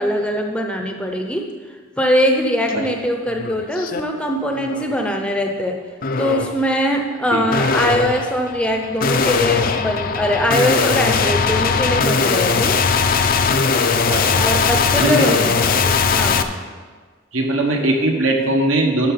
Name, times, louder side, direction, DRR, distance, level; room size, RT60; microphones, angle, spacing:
voice 1, 0.0-1.4 2.0-5.8 6.2-12.8 14.3-16.5, equal, 5° left, 2 dB, 0.7 m, -21 dB
sound 1, 2.7-2.9 3.3-4.0 4.5-4.9 6.0-6.6 7.5-16.4, left 5 dB, 40° left, 0.5 m, -19 dB
voice 2, 14.1-14.5 14.9-15.2 17.3-19.1, right 2 dB, 70° right, 1 dB, 1.5 m, -20 dB
12.0 x 6.1 x 5.8 m, 1.5 s
head